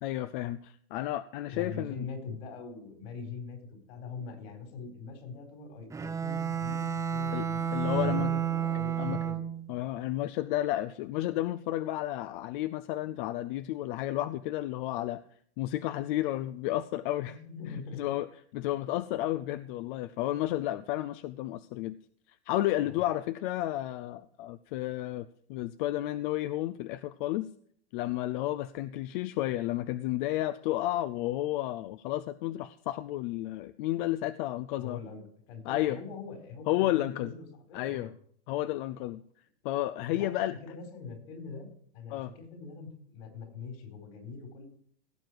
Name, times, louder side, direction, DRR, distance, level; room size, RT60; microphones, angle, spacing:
voice 1, 0.0-2.1 7.3-8.3 9.0-9.2 9.7-15.2 15.6-17.4 17.7-18.3 18.5-22.0 22.5-27.5 27.9-35.0 35.6-36.0 36.7-37.3 37.7-38.1 38.5-39.2 39.6-40.6 42.1-42.3, left 15 dB, 50° left, 12 dB, 0.6 m, -32 dB
voice 2, 1.5-9.5 17.2-18.0 22.8-23.0 34.8-35.2 35.5-38.1 40.1-41.7 41.9-44.7, left 5 dB, 65° left, 5 dB, 4.5 m, -43 dB
Bowed string instrument, 5.9-9.7, right 8 dB, 10° right, 0.6 m, -31 dB
17.0 x 7.7 x 4.7 m, 0.62 s
supercardioid pair, 130°, 33 cm